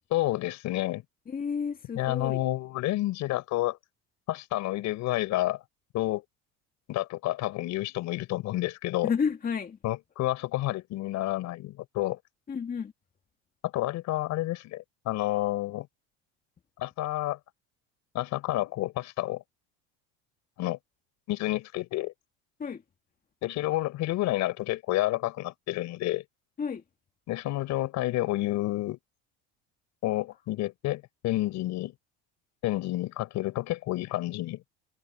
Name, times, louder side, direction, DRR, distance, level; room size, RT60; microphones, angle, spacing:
voice 1, 0.1-1.0 2.0-3.8 4.3-5.6 5.9-6.2 6.9-9.1 9.8-12.2 13.6-15.9 16.8-17.4 18.1-19.4 20.6-20.8 21.3-22.1 23.4-26.2 27.3-29.0 30.0-31.9 32.6-34.6, left 16 dB, 65° left, 5.6 m, -29 dB
voice 2, 1.3-2.4 9.0-9.8 12.5-12.9 22.6-22.8 26.6-26.8, left 6 dB, 30° left, 2.0 m, -31 dB
supercardioid pair, 100°, 31 cm